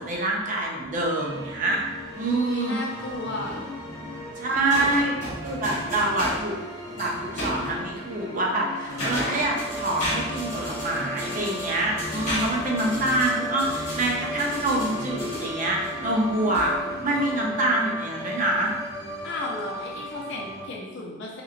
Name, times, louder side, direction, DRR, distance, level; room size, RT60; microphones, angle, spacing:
voice 1, 0.0-1.8 2.1-2.8 4.4-6.6 6.9-16.7 17.0-18.7, right 2 dB, 40° right, -2 dB, 0.6 m, -26 dB
sound 1, 1.2-20.7, equal, 20° left, 0.8 m, -36 dB
voice 2, 2.3-3.7 19.2-21.4, left 2 dB, 60° left, -2 dB, 0.5 m, -34 dB
sound 2, 3.1-7.8 8.6-17.5, equal, 35° left, 1.4 m, -35 dB
3.8 x 2.9 x 2.5 m, 1.2 s
head